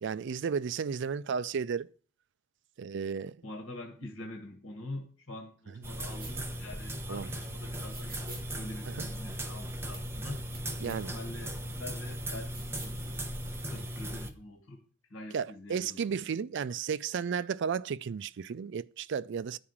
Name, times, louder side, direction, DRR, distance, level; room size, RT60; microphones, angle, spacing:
voice 1, 0.0-1.9 2.8-3.4 5.7-5.8 7.1-7.3 8.9-9.1 10.8-11.1 15.3-19.6, right 6 dB, 60° right, 0.4 m, -33 dB
voice 2, 3.4-10.4 10.8-13.4 13.7-14.8 15.1-16.0, left 1 dB, 85° left, 1.6 m, -45 dB
sound 1, 5.8-14.3, right 1 dB, 10° right, 0.9 m, -38 dB
sound 2, 6.2-6.3 7.7-8.4 9.9-10.0 10.5-10.6 10.9-11.0 12.3-13.0, right 4 dB, 45° right, 2.9 m, -47 dB
10.0 x 4.8 x 7.2 m
head